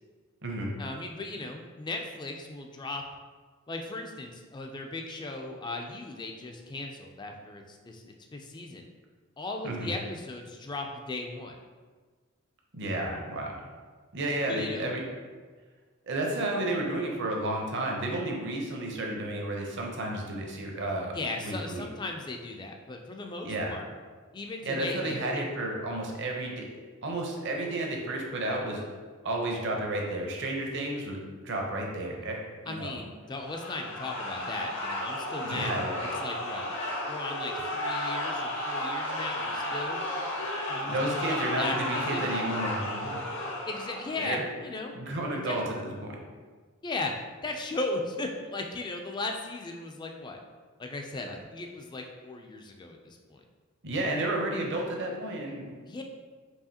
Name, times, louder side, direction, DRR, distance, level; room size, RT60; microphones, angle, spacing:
voice 1, 0.8-3.0 3.7-8.8 9.4-11.6 14.5-14.9 21.1-23.8 24.3-25.4 32.7-35.7 36.0-36.7 37.1-40.0 40.7-42.3 43.7-44.9 45.3-45.6 46.8-47.1 47.4-50.4 50.8-53.4 55.9-56.0, left 2 dB, 20° left, 3 dB, 0.3 m, -37 dB
voice 2, 12.7-13.5 14.1-15.0 16.1-21.8 23.4-23.7 24.6-26.8 27.0-28.8 29.2-32.9 35.4-36.0 40.9-43.3 44.2-44.5 44.9-46.2 53.8-55.7, right 1 dB, 55° right, 0 dB, 0.7 m, -32 dB
sound 1, 33.4-44.3, left 1 dB, 60° left, 0.8 m, -33 dB
4.7 x 2.9 x 2.8 m, 1.5 s
head